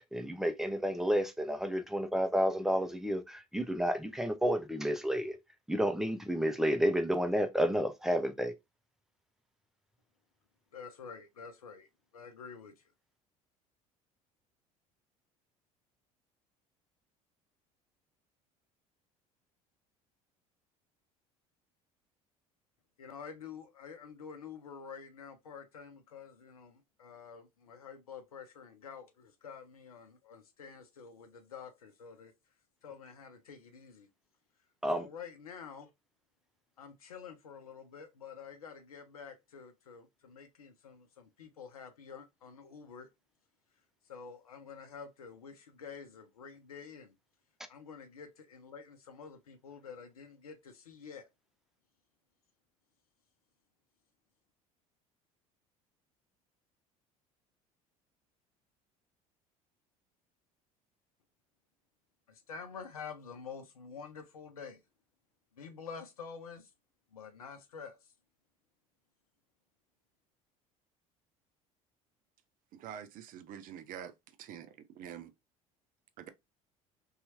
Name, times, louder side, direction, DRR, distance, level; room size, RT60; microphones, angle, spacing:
voice 1, 0.0-5.4 5.7-8.5 34.8-35.1, equal, ahead, 0.5 m, -31 dB
voice 2, 10.7-12.8 23.0-32.3 32.8-34.1 34.9-35.9 36.8-43.1 44.1-47.1 47.7-51.3 62.3-64.8 65.5-66.7 67.1-68.1, left 6 dB, 90° left, 0.6 m, -48 dB
voice 3, 72.7-74.1 74.5-74.6 75.0-75.2 76.2-76.3, right 9 dB, 50° right, 0.5 m, -45 dB
2.8 x 2.3 x 2.8 m
hypercardioid pair, 65°, 18 cm